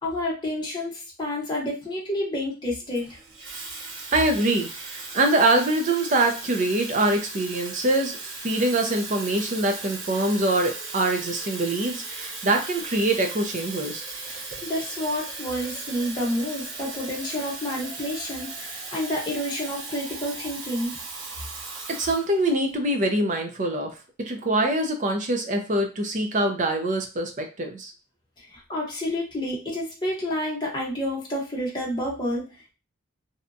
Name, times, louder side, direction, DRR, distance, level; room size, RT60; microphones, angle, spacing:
voice 1, 0.0-3.2 14.3-21.0 28.4-32.7, left 1 dB, 25° left, -4 dB, 0.9 m, -29 dB
Water tap faucet / Fill (with liquid), 2.9-22.7, right 3 dB, 75° right, 0.8 m, -37 dB
voice 2, 4.1-8.2 8.4-14.0 21.9-27.9, right 2 dB, 40° right, 4 dB, 0.5 m, -24 dB
2.7 x 2.2 x 2.6 m, 0.31 s
head